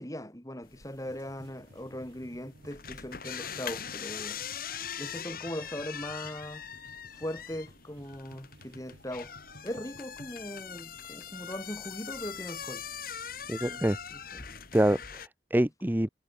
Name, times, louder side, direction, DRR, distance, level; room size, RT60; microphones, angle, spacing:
voice 1, 0.0-4.4 5.0-6.6 7.1-9.3 9.6-12.8 13.6-13.8 14.1-14.4 15.5-15.7, equal, 15° left, 3.9 m, -40 dB
sound 1, 0.6-15.3, left 8 dB, 50° left, 3.4 m, -42 dB
sound 2, 1.0-10.8 11.6-13.5 14.1-14.2 14.3-14.8, right 1 dB, 70° right, 4.7 m, -56 dB
voice 2, 13.5-14.0 14.7-16.1, right 1 dB, 10° right, 0.6 m, -26 dB
head